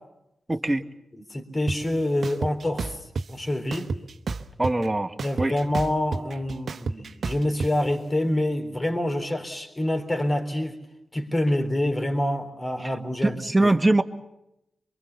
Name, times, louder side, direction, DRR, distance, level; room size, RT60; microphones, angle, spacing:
voice 1, 0.5-0.8 4.6-5.5 12.8-12.9 13.2-14.0, right 2 dB, 20° right, 7 dB, 1.5 m, -22 dB
voice 2, 1.1-3.0 3.3-3.9 5.2-10.7 11.1-13.4 13.6-13.7, left 1 dB, 30° left, 7 dB, 3.8 m, -26 dB
sound 1, 1.7-1.8 2.2-3.3 3.7-4.9 5.2-7.7, right 4 dB, 65° right, 1.0 m, -30 dB
23.5 x 23.5 x 7.2 m, 0.87 s
supercardioid pair, 40°, 0 cm